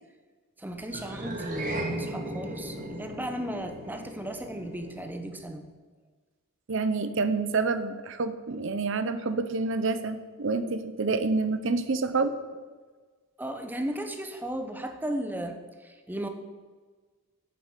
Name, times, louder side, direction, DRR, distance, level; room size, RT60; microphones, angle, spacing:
voice 1, 0.6-5.7 13.4-16.3, right 1 dB, 10° right, 6 dB, 0.9 m, -35 dB
sound 1, 0.9-5.5, right 1 dB, 40° right, 1.7 m, -37 dB
voice 2, 6.7-12.6, right 3 dB, 60° right, 11 dB, 0.6 m, -28 dB
8.9 x 7.7 x 8.0 m, 1.4 s
head